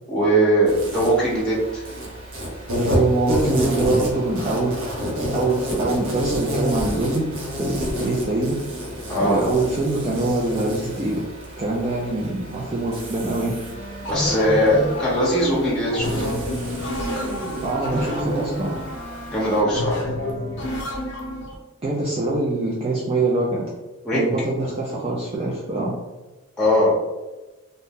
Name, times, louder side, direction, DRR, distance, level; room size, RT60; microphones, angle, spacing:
voice 1, 0.1-1.8 9.1-9.4 14.1-16.3 19.3-20.0 24.0-24.2 26.6-26.9, equal, 5° left, -7 dB, 0.8 m, -20 dB
Insect, 0.7-19.6, equal, 75° right, 0.9 m, -30 dB
voice 2, 2.9-4.7 5.3-7.3 7.6-8.6 9.2-11.2 11.6-13.5 17.6-18.8 21.8-23.6 24.1-25.9, right 2 dB, 25° right, -5 dB, 0.3 m, -24 dB
Wind instrument woodwind instrument, 13.7-20.8, right 1 dB, 45° right, 0.8 m, -38 dB
sound 1, 14.0-21.6, left 1 dB, 55° left, 0.6 m, -29 dB
2.6 x 2.1 x 3.5 m, 1.1 s
head